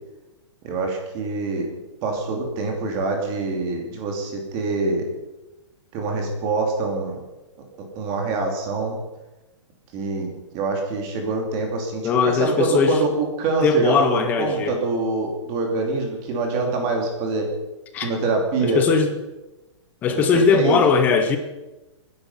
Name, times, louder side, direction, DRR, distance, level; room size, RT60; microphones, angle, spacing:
voice 1, 0.6-1.7 2.0-5.0 5.9-7.2 7.9-9.0 9.9-17.5 18.0-18.8 20.1-20.8, right 3 dB, 20° right, 2 dB, 2.5 m, -25 dB
voice 2, 12.0-13.0 13.6-14.8 17.9-18.1 18.6-19.1 20.0-21.4, left 5 dB, 10° left, 7 dB, 0.6 m, -19 dB
23.5 x 10.5 x 5.5 m, 1.0 s
hypercardioid pair, 180°, 16 cm